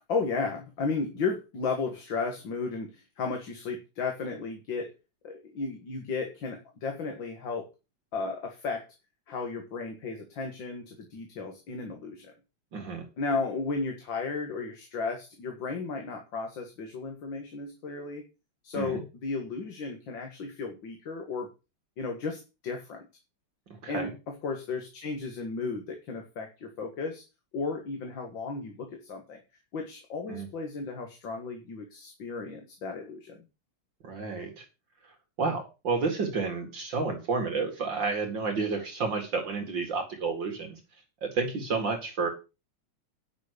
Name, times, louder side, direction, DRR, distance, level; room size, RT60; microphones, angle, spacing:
voice 1, 0.1-4.9 5.2-7.7 8.1-8.9 9.3-12.3 13.2-18.2 18.6-21.5 22.0-23.1 23.9-27.2 27.5-29.4 29.7-33.4, left 4 dB, 65° left, 4 dB, 2.4 m, -34 dB
voice 2, 12.7-13.1 18.7-19.0 23.8-24.1 30.3-30.5 34.0-34.6 35.4-40.7 41.2-42.3, right 4 dB, 60° right, 3 dB, 2.7 m, -30 dB
10.0 x 6.2 x 6.7 m, 0.29 s
omnidirectional pair, 2.3 m